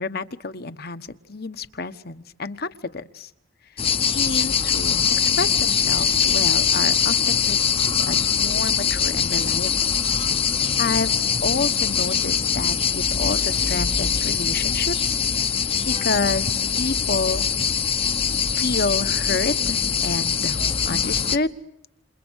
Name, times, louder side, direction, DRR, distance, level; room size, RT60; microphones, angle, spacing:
voice 1, 0.0-3.3 4.1-9.9 10.8-11.1 11.4-15.2 15.8-17.4 18.6-20.6 20.8-21.5, left 3 dB, 50° left, 11 dB, 1.3 m, -29 dB
sound 1, 3.8-21.4, left 7 dB, 30° left, 1.0 m, -22 dB
29.0 x 28.5 x 6.5 m, 0.82 s
head